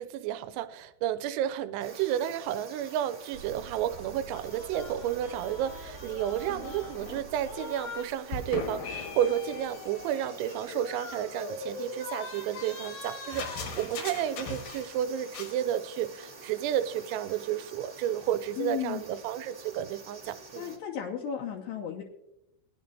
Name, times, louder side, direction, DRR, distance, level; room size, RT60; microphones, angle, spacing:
voice 1, 0.0-20.7, right 10 dB, 90° right, 11 dB, 3.3 m, -31 dB
sound 1, 1.8-20.8, right 3 dB, 40° right, 1.3 m, -49 dB
sound 2, 3.3-9.3, right 8 dB, 65° right, 2.9 m, -49 dB
sound 3, 4.3-8.1 8.3-15.0 15.3-15.6, left 4 dB, 65° left, 2.1 m, -40 dB
voice 2, 18.6-19.0 20.5-22.0, left 9 dB, 80° left, 0 dB, 2.4 m, -34 dB
19.5 x 10.5 x 2.7 m, 0.87 s
omnidirectional pair, 5.9 m